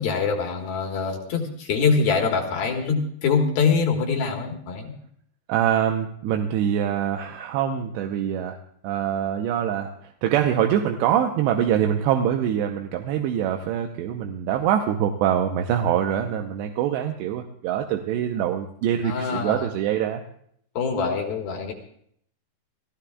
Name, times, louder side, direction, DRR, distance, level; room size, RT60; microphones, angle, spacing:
voice 1, 0.0-4.9 19.0-19.6 20.8-21.7, left 5 dB, 65° left, 2 dB, 3.1 m, -24 dB
voice 2, 5.5-8.6 8.8-9.9 10.2-20.2, right 10 dB, 80° right, 4 dB, 2.9 m, -24 dB
28.5 x 15.0 x 2.3 m, 0.67 s
omnidirectional pair, 5.1 m